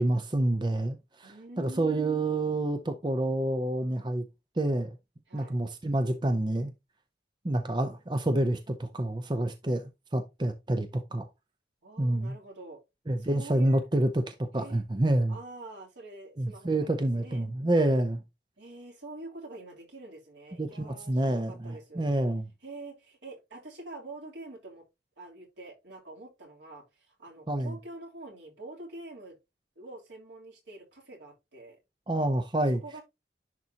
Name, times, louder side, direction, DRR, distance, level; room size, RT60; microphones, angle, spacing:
voice 1, 0.0-4.2 4.6-5.0 5.3-6.7 7.4-9.8 10.1-11.3 12.0-12.4 13.1-15.4 16.4-18.2 20.6-22.4 27.5-27.7 32.1-32.8, right 1 dB, 25° right, 0.6 m, -28 dB
voice 2, 1.2-2.2 5.3-5.5 11.8-12.8 13.2-13.8 14.5-14.8 15.3-16.7 17.2-17.5 18.6-22.1 22.6-24.8 25.2-29.4 29.7-31.8 32.8-33.0, right 2 dB, 85° right, 3.1 m, -46 dB
10.5 x 4.2 x 2.8 m
head